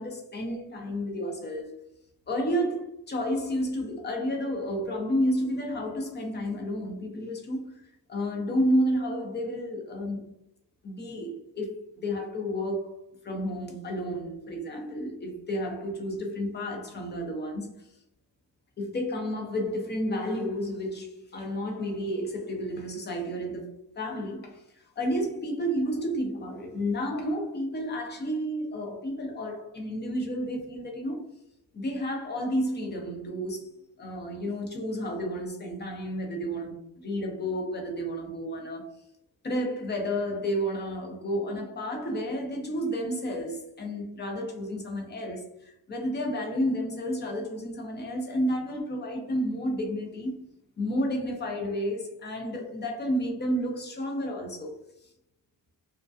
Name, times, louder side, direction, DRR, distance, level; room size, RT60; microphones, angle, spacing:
voice 1, 0.0-1.7 2.3-7.8 8.1-10.3 10.8-13.0 13.2-17.9 18.8-23.7 24.0-31.3 31.7-38.9 39.4-50.4 50.8-54.8, equal, 25° left, 0.5 m, -31 dB
2.5 x 2.2 x 2.3 m
cardioid pair, 130°, 46 cm